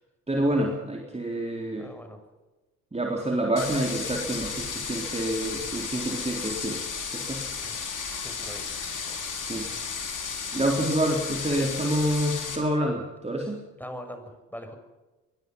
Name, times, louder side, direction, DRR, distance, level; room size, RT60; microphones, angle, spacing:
voice 1, 0.3-1.9 2.9-6.8 7.1-7.4 7.7-7.9 9.4-10.0 10.5-13.6, right 1 dB, 15° right, 0 dB, 3.9 m, -28 dB
voice 2, 1.8-2.2 5.7-6.1 7.6-7.8 8.2-8.8 9.1-9.2 13.8-14.8, equal, 5° left, 6 dB, 6.4 m, -42 dB
sound 1, 3.6-12.6, left 5 dB, 40° left, 5.8 m, -34 dB
23.0 x 22.0 x 5.5 m, 1.1 s
figure-of-eight pair, 50°, 45 cm